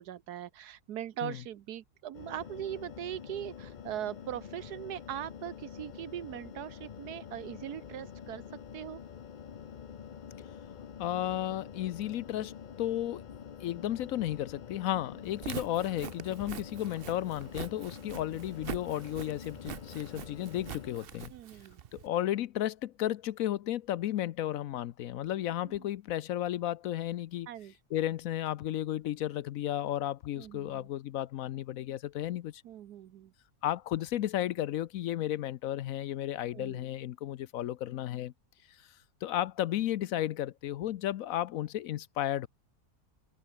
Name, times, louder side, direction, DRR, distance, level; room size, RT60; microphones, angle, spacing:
voice 1, 0.0-8.4 8.7-9.0 21.3-21.8 27.5-27.7 30.4-30.9 32.6-33.3 36.5-36.9, right 11 dB, 90° right, 1.4 m, -40 dB
sound 1, 2.1-21.0, left 7 dB, 50° left, 0.6 m, -47 dB
voice 2, 11.0-13.3 13.6-21.3 21.9-27.5 27.9-32.6 33.6-38.3 39.2-42.5, left 12 dB, 70° left, 1.0 m, -33 dB
Walk footsteps, 15.3-22.1, right 9 dB, 50° right, 0.7 m, -44 dB
omnidirectional pair, 1.6 m